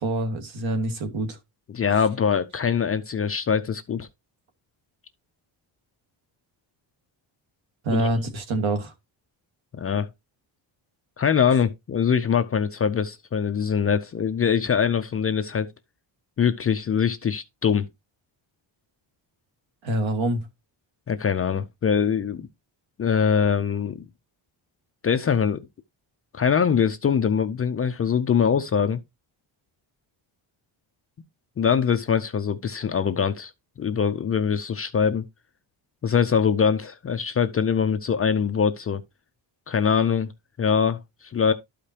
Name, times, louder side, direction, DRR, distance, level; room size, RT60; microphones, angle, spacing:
voice 1, 0.0-1.4 7.8-8.9 19.8-20.4, right 1 dB, 70° right, 1.9 m, -25 dB
voice 2, 1.7-4.1 7.9-8.0 9.7-10.1 11.2-15.7 16.4-17.9 21.1-22.5 23.0-24.0 25.0-25.6 26.3-29.0 31.6-33.5 33.8-35.2 36.0-39.0 39.7-40.3 40.6-41.5, left 7 dB, 30° left, 0.4 m, -23 dB
12.5 x 5.0 x 2.8 m
wide cardioid pair, 170°, 48 cm